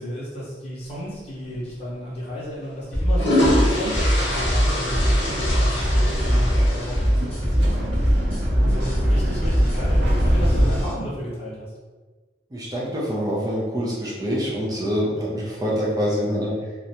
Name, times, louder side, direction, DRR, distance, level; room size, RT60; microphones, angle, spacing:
voice 1, 0.0-7.0 7.2-8.1 8.6-11.7, equal, 35° left, -7 dB, 0.9 m, -33 dB
sound 1, 1.5-1.7 2.8-7.4, left 1 dB, 80° left, 0.7 m, -25 dB
sound 2, 2.9-10.9, equal, 5° left, 0.9 m, -21 dB
sound 3, 3.4-10.8, equal, 75° right, 0.5 m, -27 dB
voice 2, 12.5-16.6, equal, 20° right, -6 dB, 0.5 m, -25 dB
2.4 x 2.1 x 2.8 m, 1.3 s
head